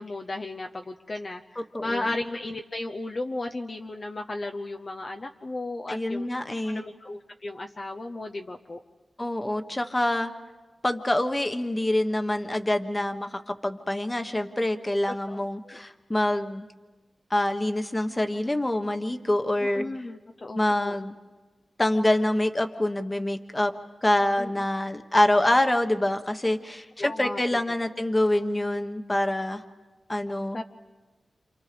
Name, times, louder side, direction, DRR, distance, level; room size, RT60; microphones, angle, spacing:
voice 1, 0.0-6.3 6.6-8.8 15.3-15.8 19.6-20.9 24.4-24.6 27.0-27.6 30.5-30.6, left 2 dB, 40° left, 3 dB, 0.8 m, -35 dB
voice 2, 1.6-2.1 5.9-6.8 9.2-10.3 10.8-16.6 17.3-19.8 20.5-21.1 21.8-23.7 24.0-29.6 30.1-30.6, left 1 dB, 20° left, 7 dB, 1.3 m, -26 dB
28.5 x 27.5 x 5.2 m, 1.3 s
wide cardioid pair, 90°, 0 cm